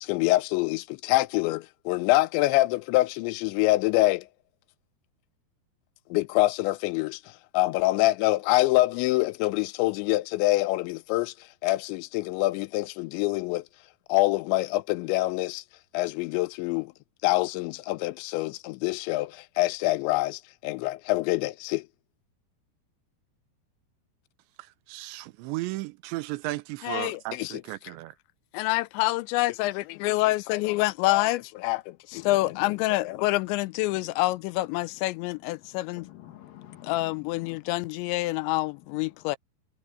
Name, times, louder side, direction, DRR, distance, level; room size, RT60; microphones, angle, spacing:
voice 1, 0.0-4.3 6.1-7.2 7.5-11.3 11.6-13.6 14.1-15.6 15.9-16.9 17.2-21.9 26.8-27.6 28.5-36.0 36.9-39.4, left 19 dB, 85° left, 2.9 m, -26 dB
voice 2, 24.9-28.1, right 18 dB, 85° right, 3.1 m, -35 dB
voice 3, 32.1-39.4, left 13 dB, 65° left, 2.5 m, -51 dB
omnidirectional pair, 5.1 m